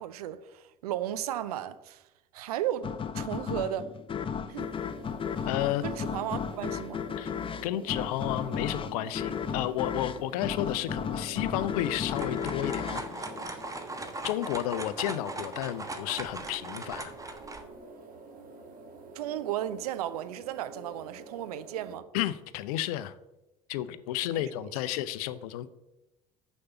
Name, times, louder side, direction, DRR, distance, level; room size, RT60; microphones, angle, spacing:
voice 1, 0.0-2.0 2.3-2.9 3.1-3.9 4.5-4.7 5.8-7.0 19.1-22.1 24.3-24.4, right 12 dB, 80° right, 0.6 m, -34 dB
sound 1, 2.8-14.1, left 7 dB, 25° left, 0.6 m, -35 dB
sound 2, 4.6-22.0, right 3 dB, 45° right, 1.6 m, -48 dB
voice 2, 5.5-5.9 7.2-7.3 7.6-13.0 14.2-17.1 22.1-23.1 23.7-25.7, left 13 dB, 70° left, 0.6 m, -32 dB
sound 3, 11.8-17.6, right 2 dB, 15° right, 1.3 m, -39 dB
6.6 x 5.3 x 6.9 m
hypercardioid pair, 65°, 19 cm